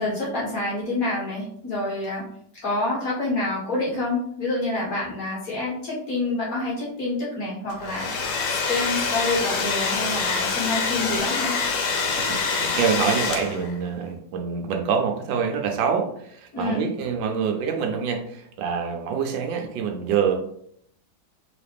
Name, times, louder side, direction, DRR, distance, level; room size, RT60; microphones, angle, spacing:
voice 1, 0.0-2.2 2.6-8.3 8.7-11.5 16.5-16.9, left 2 dB, 50° left, -6 dB, 2.1 m, -27 dB
Domestic sounds home sounds, 7.7-13.8, left 5 dB, 85° left, 1.5 m, -25 dB
voice 2, 12.2-20.4, right 6 dB, 80° right, 3 dB, 1.4 m, -26 dB
4.0 x 3.3 x 3.4 m, 0.68 s
omnidirectional pair, 2.0 m